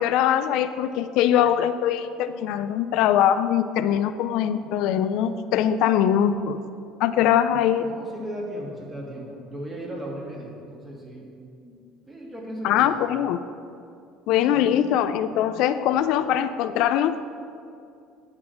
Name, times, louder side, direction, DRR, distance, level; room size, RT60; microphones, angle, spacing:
voice 1, 0.0-6.6 7.0-7.9 12.6-13.4 14.3-17.2, left 10 dB, 70° left, 11 dB, 0.3 m, -22 dB
voice 2, 7.2-7.5 7.8-11.2 11.6-11.7 12.1-12.9 14.4-14.8, equal, 15° right, -3 dB, 2.4 m, -37 dB
10.5 x 4.0 x 7.1 m, 2.5 s
supercardioid pair, 100°, 0 cm